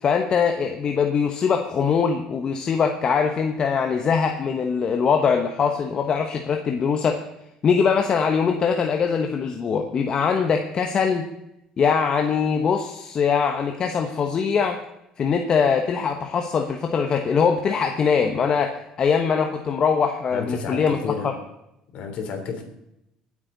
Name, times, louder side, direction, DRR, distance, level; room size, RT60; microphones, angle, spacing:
voice 1, 0.0-7.2 7.6-11.2 11.8-14.8 15.2-21.0, left 6 dB, 40° left, 4 dB, 1.1 m, -22 dB
voice 2, 20.3-21.4 21.9-22.6, left 5 dB, 60° left, 4 dB, 3.5 m, -31 dB
24.0 x 8.6 x 4.0 m, 0.84 s
cardioid pair, 105°, 2 cm